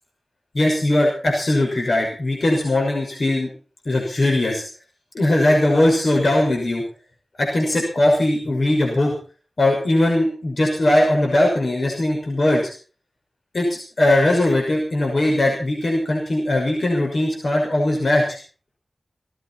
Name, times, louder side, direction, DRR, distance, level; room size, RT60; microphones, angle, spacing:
voice 1, 0.5-3.5 3.8-4.6 5.1-6.8 7.4-9.1 9.6-12.7 13.5-18.4, left 1 dB, 65° left, 0 dB, 6.1 m, -19 dB
18.5 x 15.0 x 4.5 m, 0.38 s
cardioid pair, 40°, 0 cm